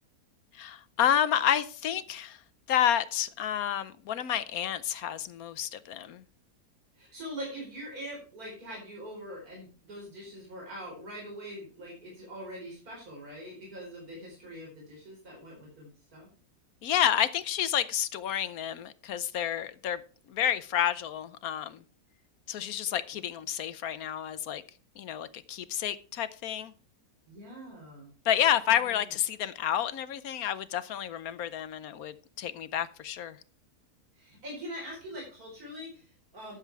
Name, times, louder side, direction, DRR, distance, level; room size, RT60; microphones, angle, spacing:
voice 1, 0.5-2.4 2.7-6.2 16.8-20.0 20.3-21.8 22.5-24.6 25.0-26.7 28.3-33.4, left 10 dB, 70° left, 1.1 m, -30 dB
voice 2, 7.0-16.3 27.3-28.1 28.7-29.1 34.2-36.6, equal, 65° right, 5.0 m, -43 dB
11.5 x 7.6 x 4.7 m
omnidirectional pair, 1.7 m